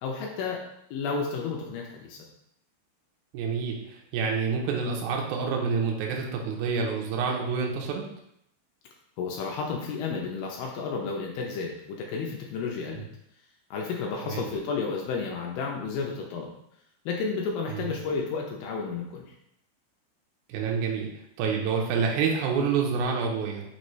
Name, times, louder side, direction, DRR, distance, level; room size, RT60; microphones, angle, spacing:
voice 1, 0.0-0.6 0.9-2.2 9.2-13.1 13.7-16.5 17.1-19.3, left 5 dB, 80° left, 0 dB, 2.2 m, -32 dB
voice 2, 3.3-8.0 14.2-14.4 17.7-17.8 20.5-21.1 21.4-23.6, right 5 dB, 80° right, 0 dB, 1.7 m, -28 dB
5.9 x 2.7 x 3.1 m, 0.77 s
omnidirectional pair, 4.2 m